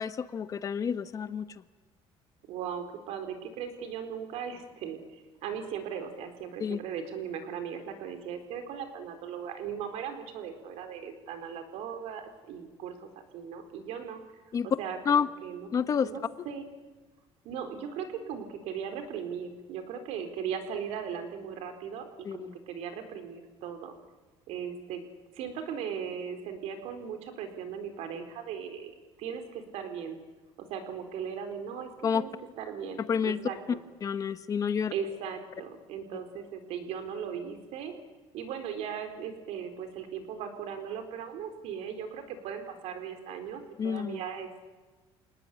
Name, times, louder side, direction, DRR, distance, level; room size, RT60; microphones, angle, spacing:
voice 1, 0.0-1.5 6.6-6.8 14.5-14.7 15.0-15.3 15.7-16.1 22.2-22.5 32.0-32.2 33.1-33.4 34.0-34.9 43.8-44.2, left 7 dB, 30° left, 11 dB, 1.1 m, -29 dB
voice 2, 2.5-14.2 14.6-15.7 16.0-16.6 17.4-23.9 24.5-25.0 25.3-28.9 29.2-30.2 30.7-32.3 32.6-33.6 34.9-37.9 38.3-44.6, right 7 dB, 70° right, 7 dB, 4.3 m, -38 dB
28.0 x 19.5 x 9.6 m, 1.3 s
cardioid pair, 160°, 11 cm